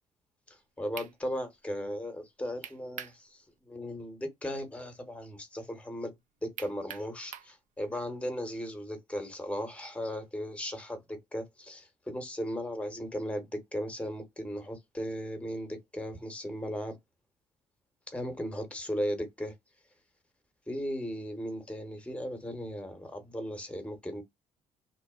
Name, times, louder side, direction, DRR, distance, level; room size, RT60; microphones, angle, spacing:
voice 1, 0.5-3.4 3.7-6.1 6.4-17.0 18.1-19.5 20.7-24.2, equal, 10° left, 0.9 m, -37 dB
sound 1, 0.5-0.6 1.0-1.1 2.6-3.2 3.6-3.7 6.6-7.5, right 9 dB, 60° right, 0.4 m, -42 dB
2.8 x 2.0 x 2.3 m
hypercardioid pair, 55°, 15 cm